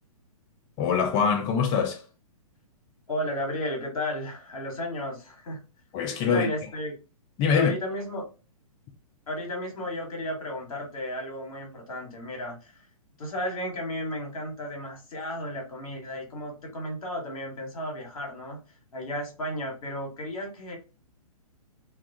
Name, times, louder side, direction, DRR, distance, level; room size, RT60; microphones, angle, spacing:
voice 1, 0.8-2.0 5.9-6.5 7.4-7.7, left 6 dB, 20° left, 0.4 m, -23 dB
voice 2, 3.1-5.6 6.2-7.0 7.5-8.3 9.3-12.7 13.2-18.6 18.9-20.8, left 1 dB, 65° left, 1.2 m, -33 dB
2.3 x 2.3 x 2.6 m
figure-of-eight pair, 125°, 19 cm